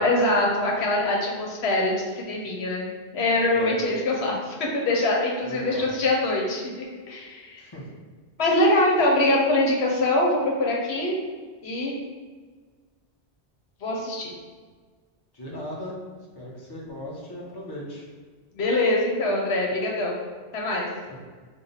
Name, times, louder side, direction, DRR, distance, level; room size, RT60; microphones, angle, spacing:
voice 1, 0.0-2.9 3.1-6.6 7.1-7.6 8.4-11.1 11.6-11.9 13.8-14.3 18.5-20.2 20.5-20.9, left 1 dB, 80° left, -2 dB, 1.0 m, -23 dB
voice 2, 5.4-5.9 7.6-7.8 15.3-16.0 16.4-18.1 21.1-21.2, left 1 dB, 25° left, -4 dB, 0.8 m, -37 dB
5.5 x 2.2 x 3.9 m, 1.5 s
omnidirectional pair, 1.1 m